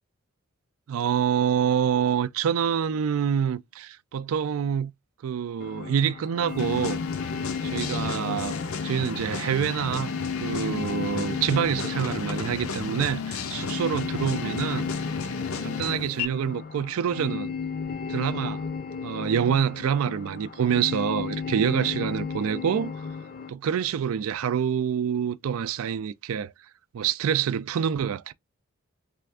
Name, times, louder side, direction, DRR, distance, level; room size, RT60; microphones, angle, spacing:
voice 1, 0.9-4.9 5.2-7.0 7.6-10.1 10.4-14.9 15.6-17.5 18.1-18.6 19.0-22.9 23.5-26.5 26.9-28.3, right 8 dB, 80° right, 0.3 m, -26 dB
sound 1, 5.6-23.5, left 5 dB, 45° left, 0.5 m, -34 dB
sound 2, 6.6-16.3, left 5 dB, 85° left, 0.6 m, -33 dB
3.3 x 2.4 x 3.3 m
head